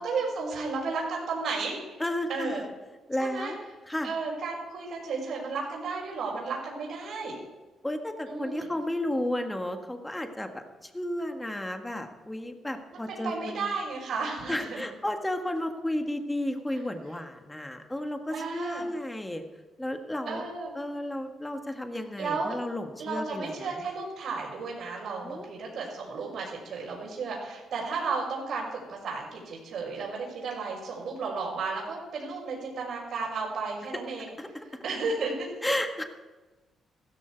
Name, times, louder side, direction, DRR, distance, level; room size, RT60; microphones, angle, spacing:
voice 1, 0.0-2.0 2.3-2.6 3.2-3.5 4.0-7.3 8.2-8.7 12.9-14.8 18.3-18.9 20.3-20.7 22.2-22.5 23.0-34.3 34.8-35.5, right 4 dB, 70° right, -7 dB, 4.9 m, -33 dB
voice 2, 2.0-2.6 3.1-3.6 3.9-4.1 7.8-13.7 14.5-19.5 19.8-20.4 20.7-23.9 25.2-25.5 34.4-34.6 35.6-36.0, left 1 dB, 10° left, 5 dB, 1.6 m, -33 dB
15.5 x 13.5 x 4.7 m, 1.2 s
cardioid pair, 90°, 0 cm